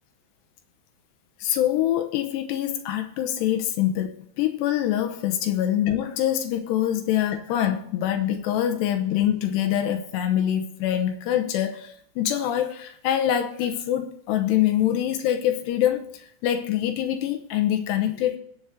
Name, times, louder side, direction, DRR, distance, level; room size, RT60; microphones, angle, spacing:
voice 1, 1.4-18.4, left 11 dB, 85° left, 3.1 m, -25 dB
20.5 x 7.0 x 3.3 m
omnidirectional pair, 4.8 m